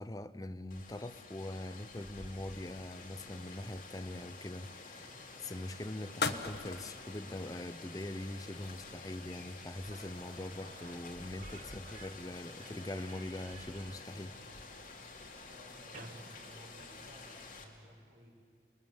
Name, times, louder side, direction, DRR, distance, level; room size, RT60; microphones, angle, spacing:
voice 1, 0.0-5.1 5.4-14.4, left 1 dB, 20° left, 0.6 m, -42 dB
Rain, 0.7-17.6, left 3 dB, 45° left, 2.8 m, -50 dB
sound 1, 1.9-4.3 5.2-5.5 6.2-7.2 7.5-7.9 8.3-9.2 9.6-10.8, left 4 dB, 65° left, 1.2 m, -42 dB
Slam / Squeak, 9.6-9.7 9.9-17.4, right 3 dB, 45° right, 1.4 m, -56 dB
voice 2, 15.5-18.3, equal, 75° right, 5.5 m, -58 dB
29.0 x 20.5 x 7.9 m
head